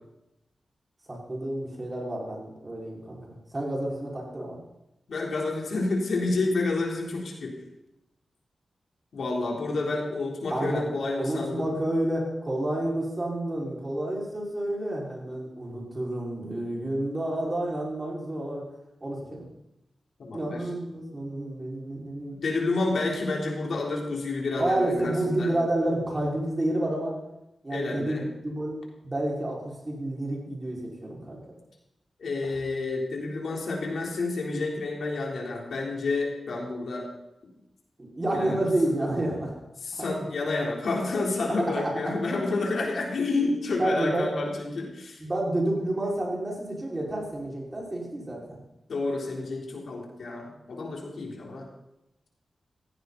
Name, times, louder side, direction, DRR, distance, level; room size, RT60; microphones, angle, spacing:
voice 1, 1.1-4.6 10.5-10.8 11.1-18.6 19.0-19.5 20.3-22.4 24.6-27.1 27.6-31.4 32.4-32.5 38.0-39.5 40.0-40.2 41.8-42.1 43.8-44.3 45.2-48.6, right 1 dB, 25° right, -3 dB, 5.6 m, -30 dB
voice 2, 5.1-7.5 9.1-11.7 20.2-20.6 22.3-25.5 27.7-28.2 32.2-37.1 38.3-38.6 39.8-45.2 48.9-51.7, left 3 dB, 80° left, -1 dB, 3.8 m, -29 dB
16.0 x 16.0 x 4.2 m, 0.89 s
wide cardioid pair, 90°, 0 cm